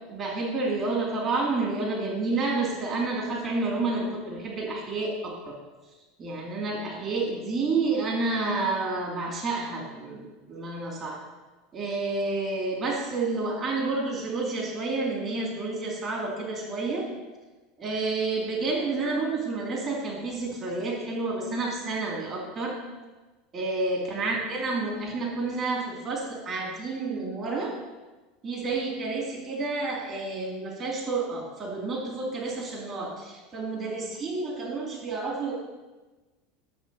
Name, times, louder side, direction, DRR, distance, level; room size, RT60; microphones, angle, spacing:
voice 1, 0.1-5.6 6.2-11.2 11.7-17.1 17.8-22.8 23.5-27.7 28.4-35.5, right 3 dB, 35° right, -1 dB, 2.8 m, -29 dB
11.0 x 7.1 x 4.1 m, 1.2 s
hypercardioid pair, 85°, 0 cm